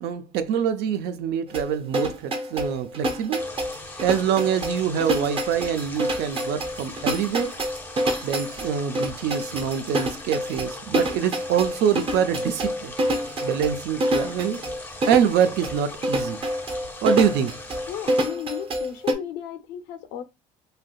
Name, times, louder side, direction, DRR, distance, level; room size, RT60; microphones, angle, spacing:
voice 1, 0.0-3.5 4.0-7.6 8.2-12.9 13.4-14.6 15.1-16.4 17.0-17.6, right 8 dB, 70° right, 0.5 m, -25 dB
sound 1, 1.5-19.1, right 1 dB, 30° right, 0.7 m, -27 dB
sound 2, 3.4-18.3, left 2 dB, 10° left, 0.6 m, -40 dB
voice 2, 17.9-20.2, left 10 dB, 80° left, 0.6 m, -34 dB
3.3 x 2.7 x 2.3 m
cardioid pair, 110°, 18 cm